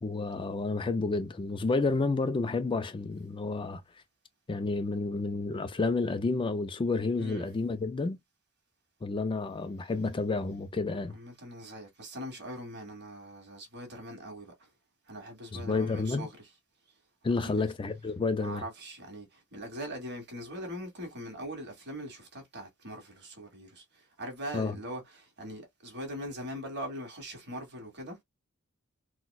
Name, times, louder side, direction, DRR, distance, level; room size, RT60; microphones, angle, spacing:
voice 1, 0.0-3.8 4.5-8.2 9.0-11.1 15.5-16.3 17.2-18.6 24.5-24.8, left 3 dB, 25° left, 0.3 m, -30 dB
voice 2, 11.1-14.7 15.1-16.3 17.4-17.6 18.4-28.2, equal, 55° right, 1.5 m, -41 dB
4.0 x 2.2 x 2.3 m
head